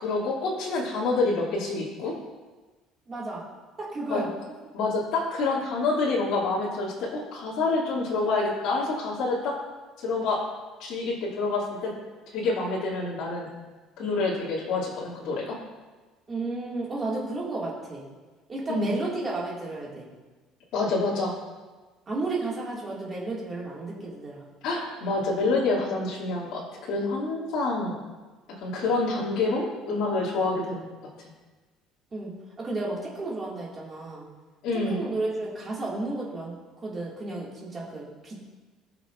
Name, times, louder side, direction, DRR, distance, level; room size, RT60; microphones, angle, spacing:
voice 1, 0.0-2.1 4.1-4.2 4.7-9.6 10.0-10.4 10.8-11.9 12.3-13.5 14.0-15.6 18.7-18.9 20.7-21.4 24.6-28.0 28.6-30.9 31.2-31.3 34.6-35.0, left 3 dB, 65° left, -6 dB, 2.4 m, -27 dB
voice 2, 3.1-3.5 3.8-4.3 16.3-18.0 18.5-20.1 22.1-24.4 32.1-32.3 32.6-34.3 34.9-36.5 36.8-38.4, right 2 dB, 25° right, -4 dB, 1.9 m, -32 dB
17.0 x 6.0 x 2.4 m, 1.3 s
cardioid pair, 160°, 0 cm